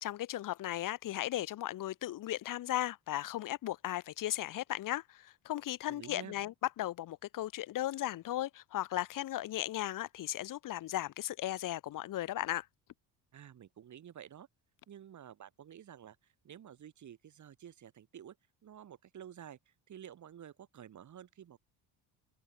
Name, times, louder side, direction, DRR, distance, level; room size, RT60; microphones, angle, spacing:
voice 1, 0.0-12.7, left 14 dB, 50° left, 1.0 m, -36 dB
voice 2, 5.9-6.3 13.3-14.5 14.9-18.4 18.6-21.6, right 9 dB, 45° right, 4.8 m, -51 dB
open air
cardioid pair, 130°, 41 cm